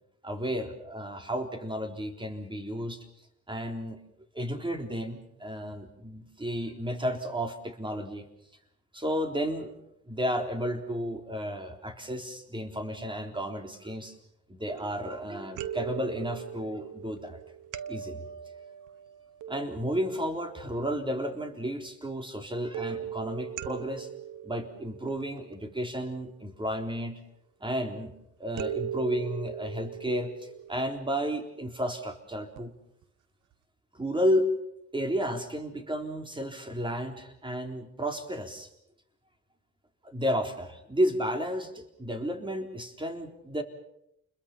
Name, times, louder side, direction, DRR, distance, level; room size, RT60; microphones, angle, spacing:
voice 1, 0.2-3.0 3.5-4.0 4.3-8.3 8.9-9.7 10.1-14.2 14.5-17.4 17.9-18.2 19.5-24.1 24.4-27.2 27.6-28.1 28.4-32.7 33.9-34.5 34.9-38.7 40.0-41.7 42.0-43.6, equal, 15° right, 5 dB, 3.7 m, -32 dB
sound 1, 14.7-15.2 15.6-21.2 22.7-26.0 28.6-31.8 32.6-32.7 33.0-33.1, right 10 dB, 85° right, 1.1 m, -40 dB
29.5 x 22.0 x 5.8 m, 0.79 s
cardioid pair, 90°, 30 cm